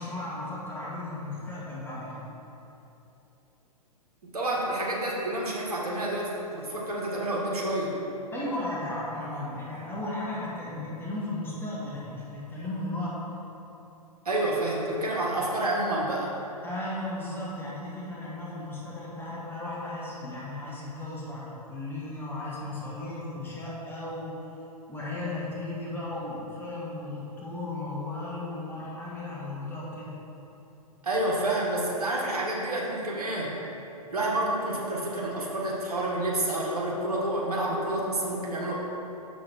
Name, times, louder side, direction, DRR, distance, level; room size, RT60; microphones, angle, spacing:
voice 1, 0.0-2.3 8.3-13.2 16.6-24.3 24.9-30.2, left 2 dB, 10° left, -6 dB, 1.4 m, -35 dB
voice 2, 4.3-8.0 14.3-16.3 31.0-33.5 34.1-38.8, right 1 dB, 70° right, -3 dB, 1.7 m, -29 dB
7.1 x 6.1 x 4.5 m, 2.9 s
figure-of-eight pair, 110°, 20 cm